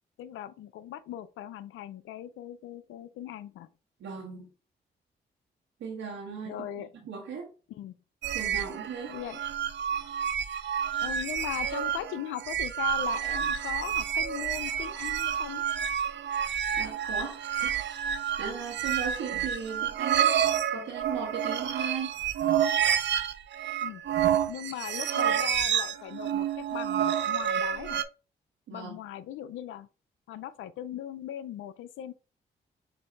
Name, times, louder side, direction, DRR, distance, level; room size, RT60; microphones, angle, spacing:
voice 1, 0.2-3.7 6.4-6.9 7.7-7.9 9.1-9.4 11.0-15.7 19.3-19.5 23.8-24.0 24.5-28.0 28.7-29.9 30.3-32.1, left 12 dB, 80° left, 0.4 m, -39 dB
voice 2, 4.0-4.5 5.8-6.6 7.0-7.5 8.3-9.1 16.8-17.8 18.4-22.1 28.7-29.0, right 6 dB, 80° right, 1.2 m, -37 dB
sound 1, 8.2-28.0, right 9 dB, 65° right, 0.5 m, -29 dB
6.1 x 2.6 x 3.3 m
supercardioid pair, 45°, 20 cm